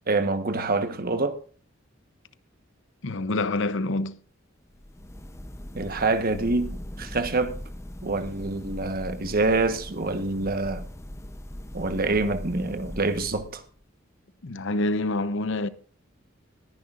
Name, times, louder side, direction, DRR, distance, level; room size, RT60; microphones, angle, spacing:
voice 1, 0.1-1.4 5.7-7.6 8.0-10.9 11.7-13.6, right 3 dB, 45° right, 1.2 m, -26 dB
voice 2, 3.0-4.2 14.4-15.7, left 2 dB, 65° left, 0.8 m, -26 dB
sound 1, 4.7-13.8, left 1 dB, 15° left, 0.7 m, -40 dB
20.5 x 10.5 x 2.5 m
head